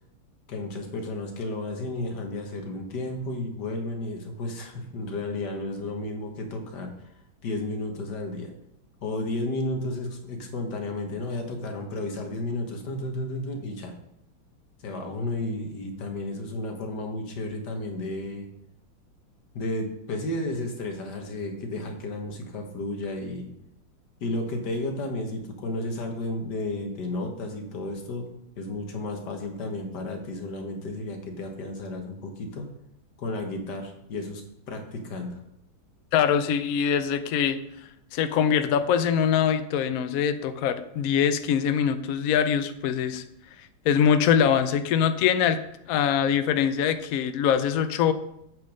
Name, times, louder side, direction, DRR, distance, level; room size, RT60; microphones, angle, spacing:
voice 1, 0.5-6.9 7.4-8.5 9.0-13.9 14.8-18.5 19.6-23.5 24.2-28.3 28.6-32.7 33.2-34.4 34.7-35.4, left 2 dB, 55° left, 4 dB, 1.8 m, -32 dB
voice 2, 36.1-37.6 38.1-43.2 43.9-45.6 45.9-48.1, left 8 dB, 90° left, 11 dB, 0.7 m, -23 dB
8.1 x 6.2 x 5.1 m, 0.80 s
omnidirectional pair, 2.2 m